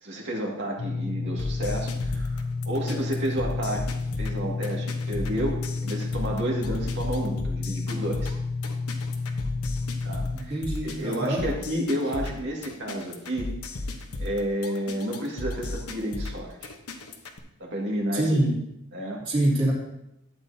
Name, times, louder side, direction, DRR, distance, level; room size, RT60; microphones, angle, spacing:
voice 1, 0.0-2.4 2.7-8.3 10.0-10.5 10.8-13.5 14.2-16.7 17.6-18.4 18.9-19.2, right 1 dB, 55° right, -1 dB, 2.1 m, -31 dB
sound 1, 0.8-10.4, left 3 dB, 45° left, 0.6 m, -31 dB
sound 2, 1.4-17.4, left 2 dB, 85° left, 1.0 m, -35 dB
voice 2, 10.3-11.5 18.1-18.6 19.2-19.7, right 1 dB, 25° right, -6 dB, 2.9 m, -25 dB
12.5 x 8.7 x 2.8 m, 0.83 s
head